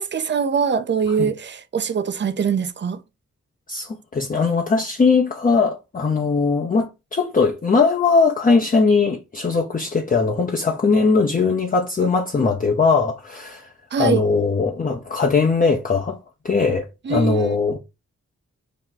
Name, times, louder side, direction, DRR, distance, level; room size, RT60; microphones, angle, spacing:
voice 1, 0.0-3.0 13.9-14.2 17.0-17.6, right 6 dB, 35° right, 0.5 m, -23 dB
voice 2, 3.7-13.7 14.0-16.2 16.4-17.8, left 4 dB, 25° left, 0.6 m, -20 dB
2.8 x 2.2 x 3.8 m
supercardioid pair, 40°, 32 cm